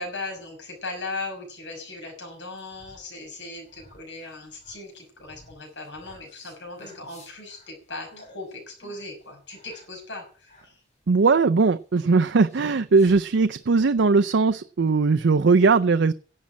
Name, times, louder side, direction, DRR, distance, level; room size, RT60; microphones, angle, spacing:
voice 1, 0.0-10.8, left 2 dB, 85° left, 2 dB, 5.8 m, -38 dB
sound 1, 2.4-13.6, left 1 dB, 40° left, 5.8 m, -55 dB
voice 2, 11.1-16.1, right 4 dB, 80° right, 9 dB, 0.5 m, -19 dB
11.0 x 7.5 x 8.6 m, 0.41 s
head